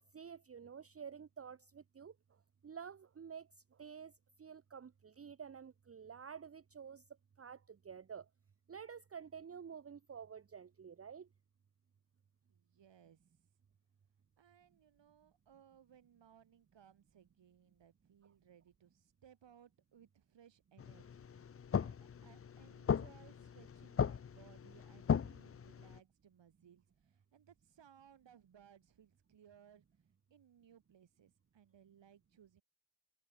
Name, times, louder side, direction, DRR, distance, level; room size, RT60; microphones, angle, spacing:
voice 1, 0.1-2.1 2.6-3.5 3.8-4.1 4.4-7.0 7.4-8.3 8.7-11.3, right 7 dB, 30° right, 0.9 m, -50 dB
voice 2, 12.5-13.2 14.4-29.8 30.3-32.6, right 9 dB, 70° right, 3.9 m, -64 dB
sound 1, 20.8-26.0, left 7 dB, 30° left, 0.6 m, -38 dB
wide cardioid pair, 160°, 45 cm